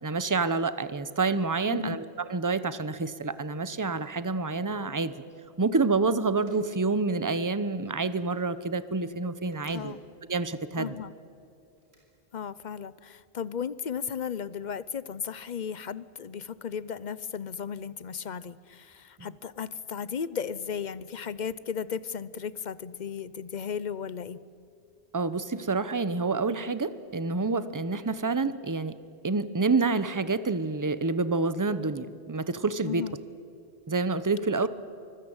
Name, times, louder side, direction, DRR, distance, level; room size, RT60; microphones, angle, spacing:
voice 1, 0.0-5.1 5.6-10.0 10.3-11.0 19.2-19.3 25.1-29.0 29.2-33.0 33.9-34.7, right 3 dB, 20° right, 14 dB, 0.8 m, -28 dB
sound 1, 6.4-6.7 8.0-8.3 9.5-9.9 11.8-12.0, right 1 dB, 70° right, 6.4 m, -57 dB
voice 2, 10.8-11.1 12.3-24.4 32.8-33.2 34.6-34.7, left 7 dB, 45° left, 18 dB, 0.8 m, -35 dB
25.0 x 21.0 x 8.9 m, 2.5 s
omnidirectional pair, 1.1 m